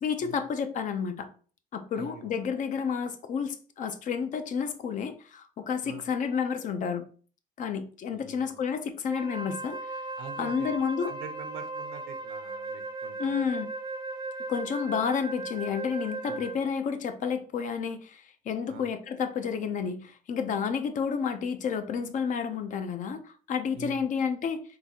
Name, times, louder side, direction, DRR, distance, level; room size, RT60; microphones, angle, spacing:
voice 1, 0.0-1.3 1.7-7.0 7.6-9.8 10.4-11.1 13.2-13.7 14.5-24.6, left 6 dB, 50° left, 0.5 m, -30 dB
voice 2, 2.0-2.3 5.8-6.1 8.1-8.6 10.2-10.8 11.1-13.5 16.3-16.5 18.7-18.9 23.7-24.1, right 8 dB, 80° right, 0.6 m, -45 dB
Wind instrument woodwind instrument, 9.1-16.7, right 3 dB, 25° right, 0.6 m, -37 dB
3.9 x 2.4 x 2.8 m
cardioid pair, 110°, 17 cm